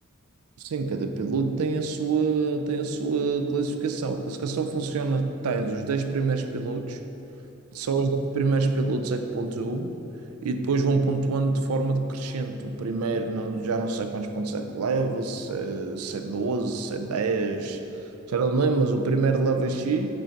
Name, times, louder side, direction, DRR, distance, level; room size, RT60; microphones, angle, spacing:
voice 1, 0.6-7.0 7.7-9.9 10.4-20.1, right 4 dB, 90° right, 7 dB, 0.5 m, -26 dB
7.4 x 3.8 x 4.5 m, 2.9 s
head